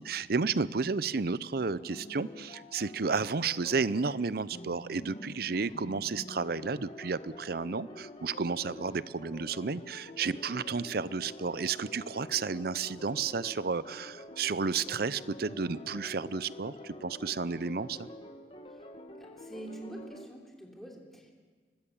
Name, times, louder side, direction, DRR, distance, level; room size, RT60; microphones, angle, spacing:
voice 1, 0.0-18.1, right 4 dB, 60° right, 17 dB, 0.6 m, -32 dB
sound 1, 1.6-20.3, left 1 dB, 35° left, 2.0 m, -47 dB
voice 2, 19.2-21.3, right 1 dB, ahead, -1 dB, 3.2 m, -46 dB
24.5 x 20.5 x 7.3 m, 1.5 s
head